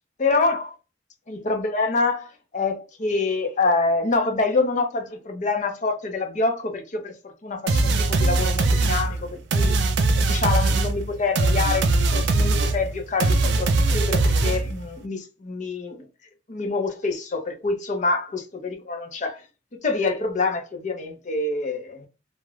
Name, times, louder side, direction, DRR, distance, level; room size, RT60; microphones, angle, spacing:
voice 1, 0.2-0.8 1.3-9.8 10.1-16.1 16.5-19.4 19.7-22.1, left 3 dB, 40° left, 0.5 m, -26 dB
sound 1, 7.7-14.9, right 2 dB, 65° right, 0.4 m, -21 dB
2.4 x 2.0 x 3.1 m
head